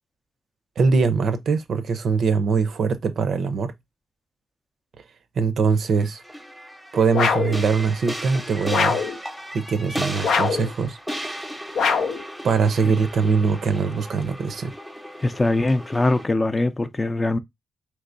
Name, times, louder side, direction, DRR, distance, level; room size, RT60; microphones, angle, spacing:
voice 1, 0.8-3.7 5.4-6.2 6.9-9.0 9.5-11.0 12.4-14.7, right 5 dB, 70° right, 0.5 m, -22 dB
sound 1, 6.0-16.3, equal, 5° right, 0.7 m, -35 dB
sound 2, 7.1-7.6 8.7-9.2 10.2-10.7 11.7-12.2, left 5 dB, 80° left, 0.4 m, -22 dB
voice 2, 15.2-17.4, left 2 dB, 25° left, 0.4 m, -22 dB
3.2 x 2.9 x 2.5 m
cardioid pair, 65°, 0 cm